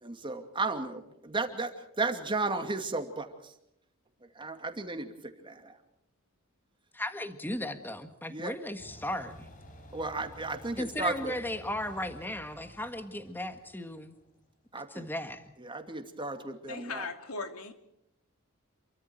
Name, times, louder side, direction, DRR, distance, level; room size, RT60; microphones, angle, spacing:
voice 1, 0.0-3.5 4.4-5.8 8.3-8.5 9.9-11.3 14.7-15.1 15.6-17.1, right 3 dB, 25° right, 6 dB, 2.5 m, -34 dB
voice 2, 6.9-9.5 10.8-14.1 14.9-15.5, left 1 dB, 10° left, 8 dB, 1.6 m, -36 dB
sound 1, 8.8-14.5, equal, 40° left, 4.6 m, -52 dB
voice 3, 16.7-17.7, left 4 dB, 85° left, 6 dB, 2.8 m, -38 dB
28.5 x 23.5 x 4.6 m, 0.81 s
head